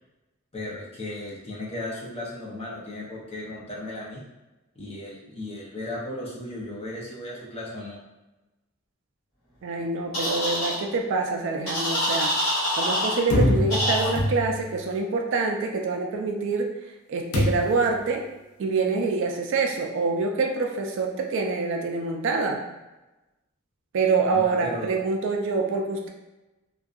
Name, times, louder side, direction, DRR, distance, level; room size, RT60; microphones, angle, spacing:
voice 1, 0.5-4.2 4.8-8.0 24.3-25.0, left 1 dB, 30° left, -5 dB, 0.6 m, -35 dB
voice 2, 9.6-16.7 17.1-18.3 18.6-22.6 23.9-26.1, right 4 dB, 60° right, 2 dB, 0.3 m, -26 dB
sound 1, 10.1-10.7 11.7-13.2 13.7-14.1, equal, 70° left, 1.2 m, -25 dB
sound 2, 13.3-14.8 17.3-17.9, left 1 dB, 85° left, 0.5 m, -24 dB
2.6 x 2.2 x 2.3 m, 1.1 s
head